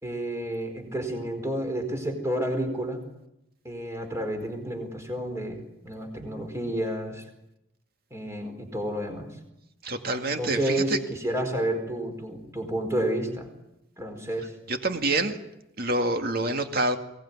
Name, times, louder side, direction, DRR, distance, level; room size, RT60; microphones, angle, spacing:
voice 1, 0.0-3.0 3.6-7.2 8.1-9.3 10.4-13.5 14.0-14.5, right 1 dB, 15° right, 4 dB, 4.5 m, -30 dB
voice 2, 9.8-11.0 14.7-15.4 15.8-17.0, right 2 dB, 50° right, 6 dB, 2.2 m, -27 dB
22.5 x 18.5 x 9.8 m, 0.86 s
head